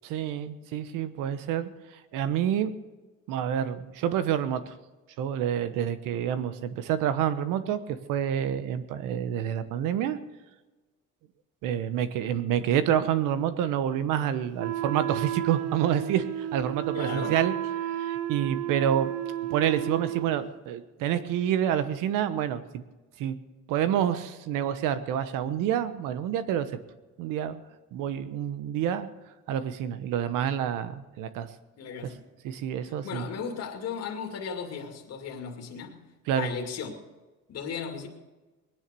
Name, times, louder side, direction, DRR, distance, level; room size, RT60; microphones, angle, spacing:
voice 1, 0.0-2.7 3.3-4.7 5.2-10.2 11.6-17.5 17.8-19.1 19.5-22.8 23.2-23.4 23.7-26.7 27.2-27.6 27.9-29.1 29.5-31.5 32.0-32.1 32.4-33.3 36.3-36.5, right 9 dB, 85° right, 1.2 m, -28 dB
Wind instrument woodwind instrument, 14.6-20.5, right 13 dB, 55° right, 0.9 m, -32 dB
voice 2, 16.9-17.4 31.8-32.2 33.0-36.0 36.4-36.9 37.5-38.1, left 6 dB, 55° left, 2.4 m, -36 dB
20.5 x 9.9 x 6.9 m
cardioid pair, 125°, 31 cm